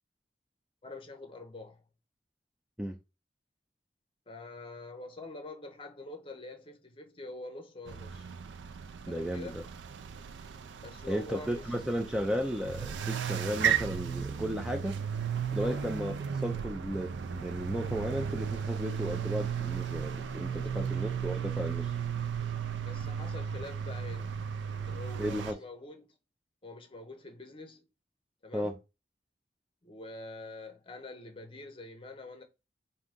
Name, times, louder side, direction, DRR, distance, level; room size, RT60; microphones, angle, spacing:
voice 1, 0.8-1.8 4.3-8.3 9.0-9.6 10.8-11.7 15.6-15.8 20.5-21.0 22.8-26.1 26.6-27.9 28.4-28.8 29.8-32.4, left 2 dB, 30° left, 0.8 m, -45 dB
sound 1, 7.9-25.5, right 7 dB, 80° right, 0.4 m, -35 dB
voice 2, 9.1-9.6 11.1-15.0 15.5-16.2 16.4-21.9 25.2-25.6 28.5-28.7, equal, 5° right, 0.4 m, -34 dB
3.8 x 2.7 x 3.6 m
head